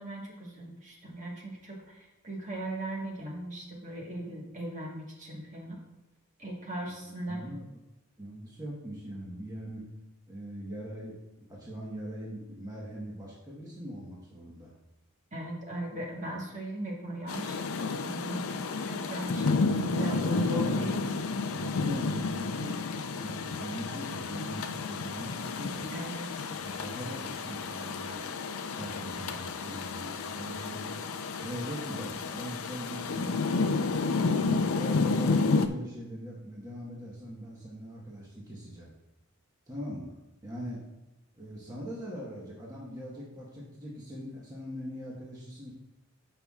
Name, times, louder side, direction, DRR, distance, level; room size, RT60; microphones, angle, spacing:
voice 1, 0.0-5.8 6.4-7.5 15.3-18.6 18.9-21.0 25.9-26.5, right 1 dB, 35° right, -1 dB, 1.5 m, -38 dB
voice 2, 7.3-7.8 8.2-9.8 10.3-11.1 11.5-14.7 19.7-20.8 21.5-22.7 23.2-25.9 26.5-28.3 28.7-30.9 31.4-33.7 34.2-38.9 39.7-40.1 40.4-40.8 41.4-45.7, equal, 15° right, -5 dB, 1.3 m, -40 dB
Rain, 17.3-35.7, left 4 dB, 75° left, 0.5 m, -31 dB
13.5 x 5.6 x 2.4 m, 0.98 s
head